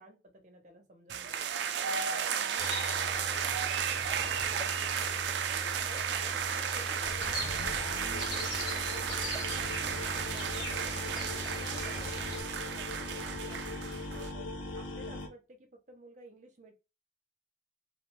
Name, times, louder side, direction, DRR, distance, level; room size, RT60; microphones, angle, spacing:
voice 1, 0.0-1.5 1.8-3.5 3.9-5.1 5.5-10.9 11.3-16.7, right 1 dB, 40° right, 3 dB, 0.7 m, -53 dB
sound 1, 1.1-14.3, right 8 dB, 65° right, 0.3 m, -34 dB
sound 2, 2.6-12.4, left 1 dB, 25° left, 0.9 m, -41 dB
sound 3, 7.0-15.3, left 2 dB, 90° left, 0.7 m, -41 dB
2.3 x 2.2 x 3.0 m, 0.29 s
head